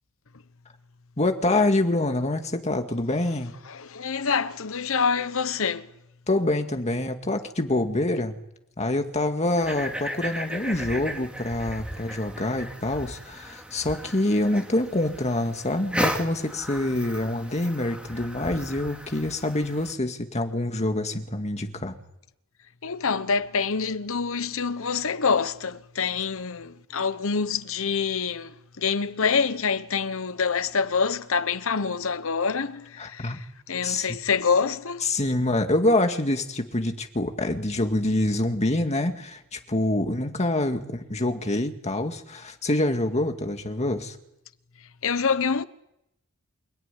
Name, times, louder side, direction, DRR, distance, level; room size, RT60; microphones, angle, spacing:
voice 1, 1.2-3.5 6.3-8.4 8.8-22.0 33.0-33.4 33.8-34.2 35.0-44.2, left 1 dB, 30° left, 2.1 m, -26 dB
voice 2, 3.7-5.9 22.8-35.1 45.0-45.6, left 5 dB, 70° left, 1.0 m, -26 dB
sound 1, 9.6-19.9, equal, 5° right, 3.0 m, -35 dB
28.0 x 17.0 x 10.0 m
head